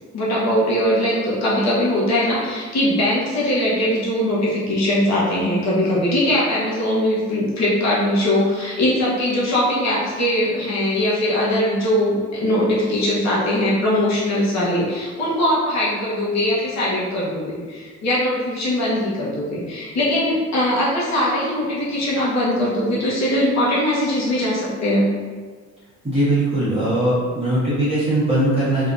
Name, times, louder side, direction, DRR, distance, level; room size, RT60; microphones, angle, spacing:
voice 1, 0.1-25.0, left 1 dB, 65° left, -7 dB, 1.0 m, -21 dB
voice 2, 26.0-28.9, right 1 dB, 20° right, -11 dB, 1.5 m, -20 dB
3.4 x 2.7 x 2.5 m, 1.5 s
cardioid pair, 90°, 30 cm